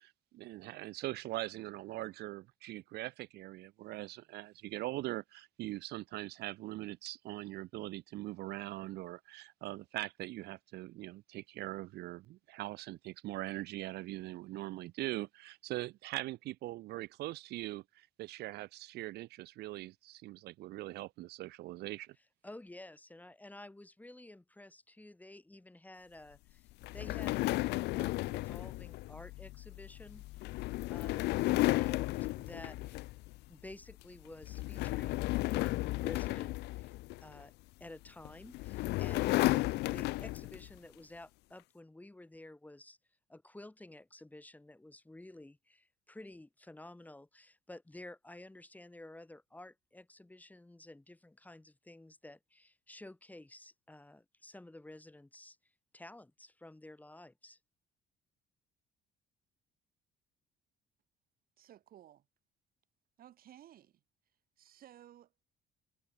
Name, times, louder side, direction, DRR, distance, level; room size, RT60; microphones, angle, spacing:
voice 1, 0.0-22.2, right 17 dB, 75° right, 0.8 m, -42 dB
voice 2, 22.4-30.6 30.9-33.1 33.5-36.9 37.2-37.5 37.8-43.0 43.3-57.6, left 1 dB, 10° left, 4.0 m, -52 dB
sound 1, 26.8-33.4 33.7-34.0 34.4-37.4 38.2-40.7, left 20 dB, 80° left, 0.5 m, -34 dB
voice 3, 61.6-62.3 63.2-64.0 64.6-65.4, right 11 dB, 60° right, 2.4 m, -57 dB
cardioid pair, 110°, 17 cm